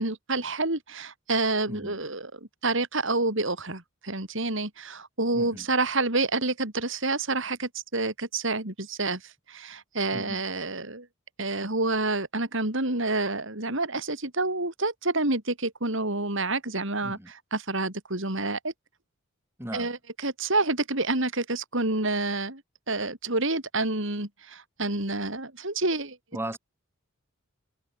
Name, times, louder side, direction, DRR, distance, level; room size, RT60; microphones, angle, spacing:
voice 1, 0.0-2.3 2.6-9.2 9.5-11.1 11.4-17.2 17.5-18.7 19.7-20.0 20.2-22.6 22.9-26.2, right 2 dB, 60° right, 4.2 m, -28 dB
voice 2, 5.3-5.7 10.1-10.4 17.0-17.3 19.6-19.9 26.3-26.6, right 1 dB, 10° right, 6.8 m, -37 dB
head